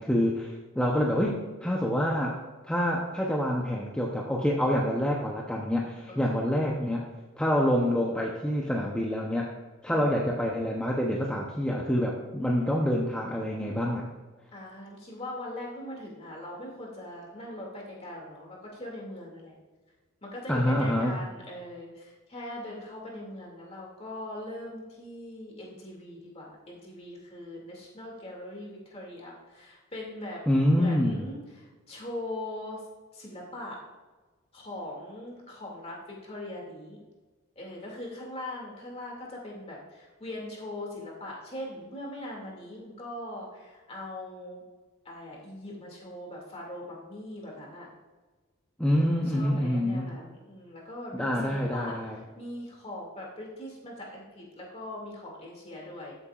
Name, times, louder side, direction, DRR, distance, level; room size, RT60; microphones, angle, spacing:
voice 1, 0.0-2.4 2.7-7.1 7.4-9.5 9.8-14.1 20.5-21.2 30.5-31.3 48.8-50.1 51.1-52.2, equal, 5° left, -2 dB, 0.7 m, -27 dB
voice 2, 6.1-6.4 9.9-10.1 14.5-19.5 20.2-30.4 30.7-32.8 33.1-33.8 34.5-37.0 37.6-44.6 45.0-47.9 48.9-56.1, left 1 dB, 30° left, -2 dB, 2.4 m, -41 dB
13.5 x 8.0 x 2.4 m, 1.3 s
head